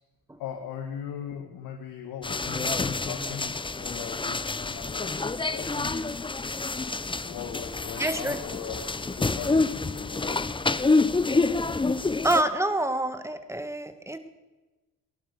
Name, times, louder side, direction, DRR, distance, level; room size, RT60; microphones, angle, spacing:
voice 1, 0.4-5.9 7.2-10.5, left 8 dB, 70° left, 4 dB, 1.7 m, -39 dB
sound 1, 2.2-12.4, left 3 dB, 15° left, 0.8 m, -28 dB
voice 2, 8.0-8.4 12.2-14.2, right 1 dB, 10° right, 9 dB, 1.9 m, -27 dB
18.5 x 11.5 x 6.8 m, 1.2 s
supercardioid pair, 60°, 36 cm